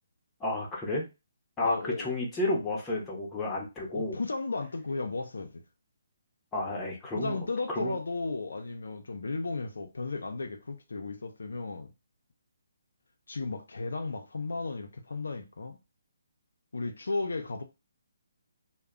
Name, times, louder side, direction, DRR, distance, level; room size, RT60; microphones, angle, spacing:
voice 1, 0.4-1.1 1.6-4.2 6.5-7.4 7.7-7.9, left 2 dB, 15° left, 0.8 m, -31 dB
voice 2, 1.6-2.1 3.9-5.6 7.1-11.9 13.3-15.8 16.7-17.6, left 3 dB, 85° left, 0.5 m, -34 dB
2.2 x 2.1 x 3.6 m
hypercardioid pair, 155°, 0 cm